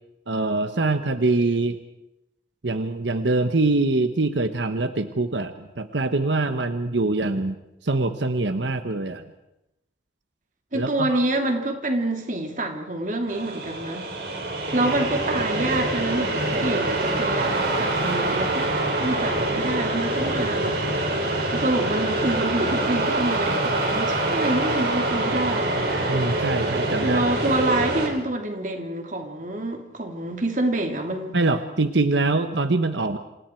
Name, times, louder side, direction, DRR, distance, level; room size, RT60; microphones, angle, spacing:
voice 1, 0.3-1.8 2.6-7.6 7.8-9.2 10.7-11.2 25.8-27.2 31.3-33.2, right 2 dB, 90° right, 9 dB, 1.1 m, -24 dB
voice 2, 10.7-14.1 14.7-18.7 19.0-21.2 21.5-25.8 27.0-31.4, right 1 dB, 45° right, 3 dB, 2.9 m, -27 dB
sound 1, 13.3-28.1, right 2 dB, 65° right, 5.0 m, -25 dB
28.0 x 28.0 x 4.6 m, 0.89 s
head